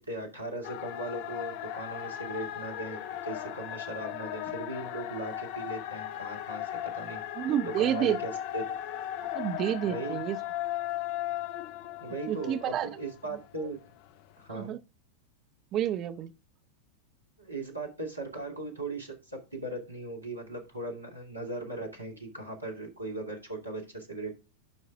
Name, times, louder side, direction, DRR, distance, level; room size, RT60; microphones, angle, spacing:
voice 1, 0.1-7.2 7.8-8.6 9.8-10.2 12.0-13.8 14.4-14.7 17.4-24.4, right 2 dB, 85° right, 2.4 m, -38 dB
sound 1, 0.6-13.4, left 12 dB, 45° left, 0.5 m, -37 dB
voice 2, 7.4-8.2 9.3-10.4 12.3-12.9 14.5-14.8 15.7-16.3, right 10 dB, 35° right, 0.7 m, -29 dB
9.6 x 5.6 x 3.5 m
figure-of-eight pair, 90°, 0 cm